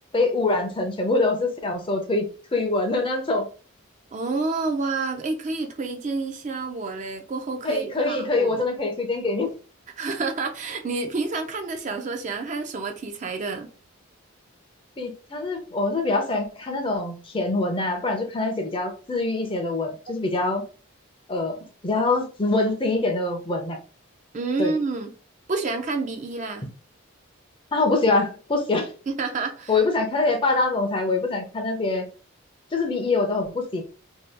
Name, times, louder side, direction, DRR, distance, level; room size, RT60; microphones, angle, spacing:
voice 1, 0.1-2.3 2.5-3.5 7.6-9.5 15.0-20.6 21.3-21.6 21.8-23.8 24.6-24.7 27.7-28.9 29.7-32.1 32.7-33.9, left 3 dB, 25° left, 0.5 m, -24 dB
voice 2, 4.1-8.6 10.0-13.7 24.3-25.1 25.5-26.7 29.1-29.8, right 3 dB, 35° right, 0.4 m, -29 dB
2.7 x 2.2 x 3.3 m
head